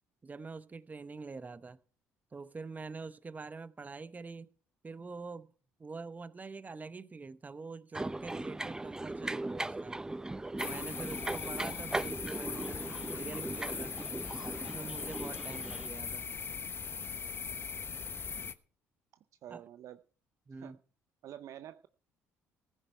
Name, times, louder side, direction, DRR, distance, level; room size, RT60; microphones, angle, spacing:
voice 1, 0.2-1.8 2.3-4.5 4.8-5.5 5.8-10.0 10.6-13.9 14.6-16.3 19.5-19.6 20.5-20.8, right 4 dB, 25° right, 0.9 m, -45 dB
sound 1, 7.9-15.9, right 2 dB, 10° right, 0.5 m, -39 dB
sound 2, 10.6-18.5, left 6 dB, 40° left, 0.9 m, -40 dB
voice 2, 19.4-20.0 20.6-20.8 21.2-21.9, right 11 dB, 65° right, 0.5 m, -47 dB
15.5 x 9.9 x 4.5 m
supercardioid pair, 65°, 6 cm